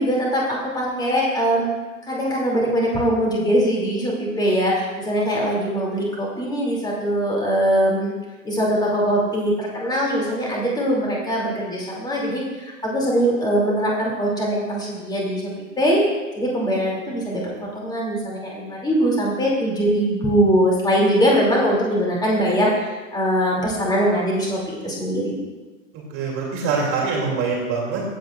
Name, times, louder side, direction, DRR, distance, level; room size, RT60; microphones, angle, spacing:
voice 1, 0.0-1.7 2.0-8.1 8.4-15.5 15.8-16.0 16.3-25.3, equal, 10° left, -3 dB, 2.5 m, -22 dB
voice 2, 25.9-28.0, right 4 dB, 35° right, -3 dB, 2.6 m, -24 dB
15.5 x 7.5 x 2.4 m, 1.2 s
figure-of-eight pair, 100°, 39 cm